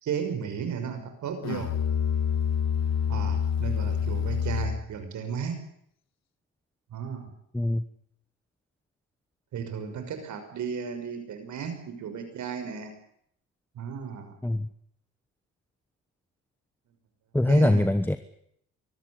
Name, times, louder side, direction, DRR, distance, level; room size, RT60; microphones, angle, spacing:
voice 1, 0.0-1.7 3.1-5.5 6.9-7.3 9.5-12.9 13.7-14.4 17.5-17.9, right 7 dB, 70° right, 7 dB, 6.1 m, -34 dB
Musical instrument, 1.4-5.0, left 8 dB, 60° left, 1.5 m, -27 dB
voice 2, 7.5-7.8 14.4-14.7 17.3-18.2, left 1 dB, 5° left, 10 dB, 1.2 m, -22 dB
23.5 x 14.5 x 9.9 m, 0.70 s
cardioid pair, 90°, 30 cm